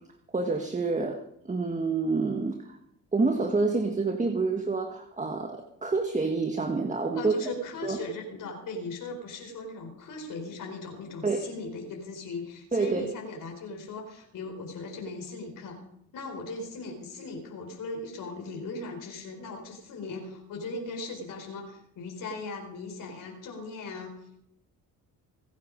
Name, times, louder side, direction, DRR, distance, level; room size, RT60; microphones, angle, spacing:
voice 1, 0.3-2.8 3.1-7.3 7.8-8.0 11.2-11.5 12.7-13.1, right 3 dB, 20° right, 5 dB, 1.5 m, -28 dB
voice 2, 7.1-15.8 16.1-24.2, left 3 dB, 65° left, 2 dB, 4.5 m, -38 dB
24.0 x 9.6 x 5.2 m, 0.78 s
cardioid pair, 85°, 36 cm